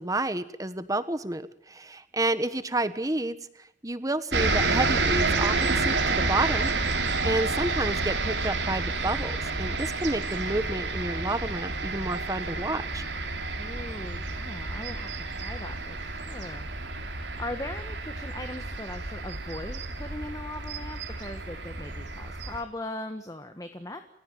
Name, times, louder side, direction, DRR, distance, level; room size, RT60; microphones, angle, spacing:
voice 1, 0.0-3.4 3.8-6.7 7.0-13.0, right 2 dB, 20° right, 12 dB, 1.3 m, -30 dB
sound 1, 4.3-22.6, right 3 dB, 75° right, 3.3 m, -30 dB
voice 2, 13.5-16.7 17.2-24.0, left 1 dB, 20° left, 7 dB, 1.5 m, -39 dB
29.5 x 15.5 x 9.3 m, 0.69 s
head